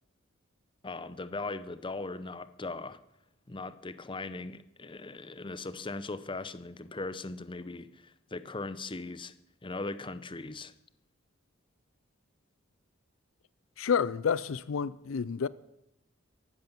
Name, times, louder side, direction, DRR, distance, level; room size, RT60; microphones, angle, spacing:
voice 1, 0.8-3.0 3.5-9.3 9.6-10.7, left 3 dB, 25° left, 0.7 m, -39 dB
voice 2, 13.8-15.5, left 6 dB, 75° left, 0.5 m, -29 dB
14.5 x 11.5 x 7.1 m
head